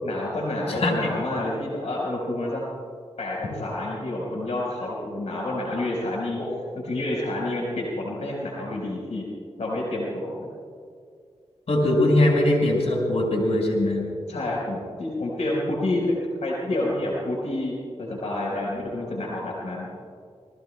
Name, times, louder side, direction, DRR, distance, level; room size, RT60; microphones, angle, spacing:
voice 1, 0.0-2.6 3.2-6.4 6.7-9.2 9.6-10.5 14.3-16.1 16.4-19.9, left 1 dB, 80° left, -4 dB, 4.6 m, -29 dB
voice 2, 0.7-1.1 6.4-6.5 11.7-14.1, left 1 dB, 65° left, -2 dB, 5.1 m, -21 dB
28.5 x 20.0 x 2.3 m, 2.2 s
wide cardioid pair, 85°, 12 cm